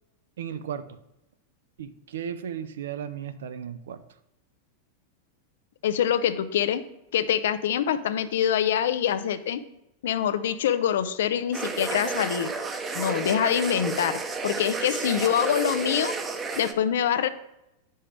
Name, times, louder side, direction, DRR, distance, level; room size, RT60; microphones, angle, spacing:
voice 1, 0.4-0.9 1.8-4.0, right 8 dB, 80° right, 11 dB, 0.6 m, -35 dB
voice 2, 5.8-6.8 7.1-9.6 10.0-12.5 12.9-16.1 16.6-17.3, left 9 dB, 75° left, 13 dB, 0.5 m, -25 dB
sound 1, 11.5-16.7, right 4 dB, 20° right, 0.8 m, -31 dB
8.6 x 5.5 x 3.3 m, 0.87 s
hypercardioid pair, 110°, 0 cm